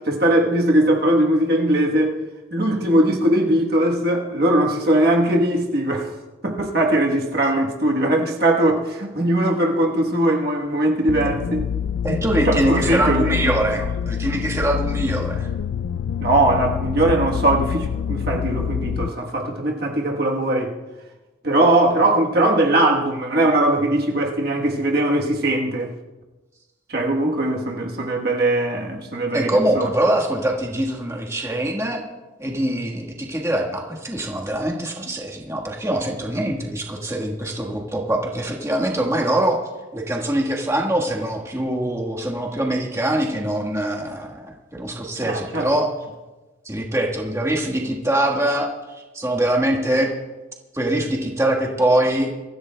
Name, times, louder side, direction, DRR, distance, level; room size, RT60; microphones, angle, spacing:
voice 1, 0.0-2.2 2.5-6.1 6.4-11.6 12.4-13.5 16.2-20.7 21.4-25.9 26.9-29.9 45.2-45.7, right 1 dB, 50° right, 1.2 m, -20 dB
sound 1, 11.1-19.1, left 7 dB, 75° left, 0.3 m, -26 dB
voice 2, 12.0-15.5 29.3-32.0 32.4-39.6 39.9-45.9 46.6-50.1 50.7-52.3, right 1 dB, 15° right, 1.4 m, -23 dB
24.5 x 14.5 x 2.2 m
head